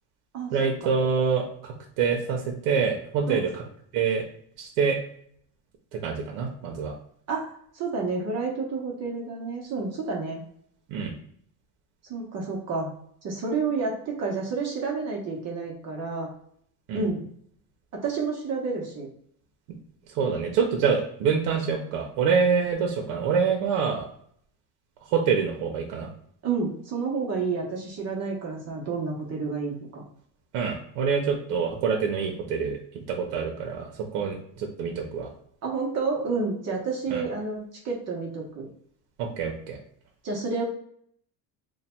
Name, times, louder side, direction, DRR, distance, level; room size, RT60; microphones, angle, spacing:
voice 1, 0.5-3.6 3.9-4.2 4.6-5.0 5.9-6.9 10.9-11.1 16.9-17.1 20.1-24.1 25.1-26.1 30.5-32.8 33.1-35.3 37.1-37.2 39.2-39.8, right 6 dB, 70° right, 2 dB, 0.8 m, -26 dB
voice 2, 7.3-10.4 12.1-12.9 13.2-16.3 16.9-17.2 17.9-19.1 26.4-30.0 35.6-37.6 37.8-38.7 40.2-40.6, right 4 dB, 35° right, -1 dB, 0.9 m, -30 dB
3.2 x 2.2 x 4.3 m, 0.65 s
cardioid pair, 155°, 44 cm